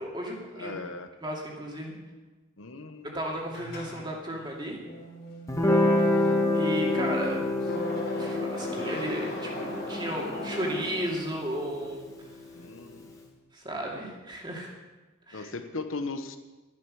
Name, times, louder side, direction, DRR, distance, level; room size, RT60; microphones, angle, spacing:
voice 1, 0.0-0.8 1.2-1.9 3.0-4.8 6.1-7.7 8.2-12.3 13.5-14.7 15.3-15.5, right 1 dB, 20° right, -1 dB, 2.4 m, -34 dB
voice 2, 0.6-1.1 2.6-3.2 10.1-10.4 12.5-13.1 15.3-16.4, left 3 dB, 80° left, 9 dB, 1.1 m, -38 dB
sound 1, 3.5-11.6, left 1 dB, 50° left, 3.1 m, -38 dB
Guitar, 5.5-12.6, left 1 dB, 15° left, 1.5 m, -28 dB
12.5 x 11.0 x 6.4 m, 1.2 s
head